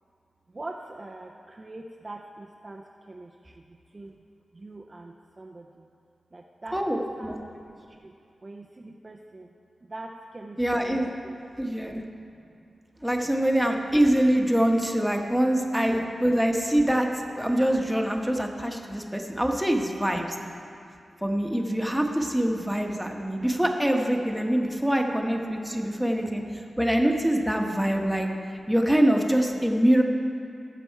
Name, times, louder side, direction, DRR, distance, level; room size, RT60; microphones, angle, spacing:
voice 1, 0.5-4.2 4.5-5.9 6.3-8.1 8.4-9.5 9.8-11.0 11.2-11.4 12.2-12.5 15.9-16.1 19.9-20.1 20.7-20.9, right 2 dB, 35° right, 1 dB, 0.7 m, -43 dB
voice 2, 6.7-7.4 10.6-11.1 11.6-12.0 13.0-20.2 21.2-28.3 28.7-30.0, right 1 dB, 5° right, 2 dB, 1.3 m, -24 dB
17.5 x 7.0 x 4.7 m, 2.5 s
cardioid pair, 70°, 0 cm